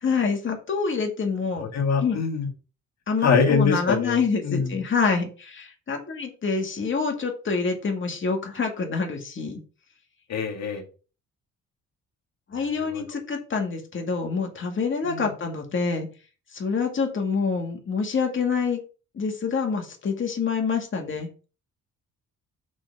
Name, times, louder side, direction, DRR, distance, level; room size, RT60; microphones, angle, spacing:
voice 1, 0.0-1.7 2.0-2.2 3.1-9.6 12.5-16.1 16.5-18.8 19.1-21.3, left 5 dB, 40° left, 3 dB, 2.2 m, -26 dB
voice 2, 1.6-2.5 3.2-4.7 10.3-10.8 12.8-13.0 15.0-15.3, left 5 dB, 60° left, 2 dB, 2.2 m, -24 dB
6.1 x 4.2 x 5.5 m, 0.35 s
cardioid pair, 90°, 30 cm